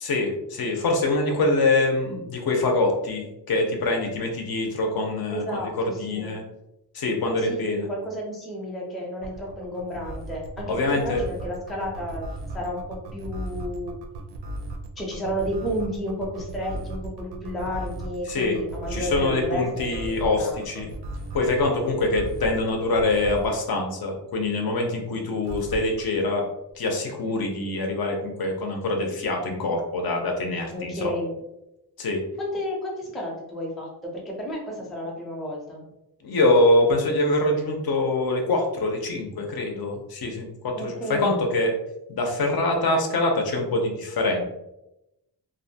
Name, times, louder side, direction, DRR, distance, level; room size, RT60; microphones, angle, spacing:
voice 1, 0.0-5.4 6.0-6.4 6.9-7.9 10.7-11.2 18.3-18.6 18.9-20.9 21.3-26.4 26.8-31.1 32.0-32.2 36.2-41.7 42.1-44.4, left 2 dB, 60° left, 2 dB, 0.6 m, -24 dB
voice 2, 5.3-6.4 7.4-12.3 12.5-13.9 15.0-20.7 30.7-31.3 32.4-35.8 40.8-41.4, equal, ahead, -3 dB, 0.4 m, -32 dB
sound 1, 9.2-23.6 25.4-26.0, right 2 dB, 75° right, 0.5 m, -36 dB
2.6 x 2.1 x 2.6 m, 0.90 s
wide cardioid pair, 175°, 41 cm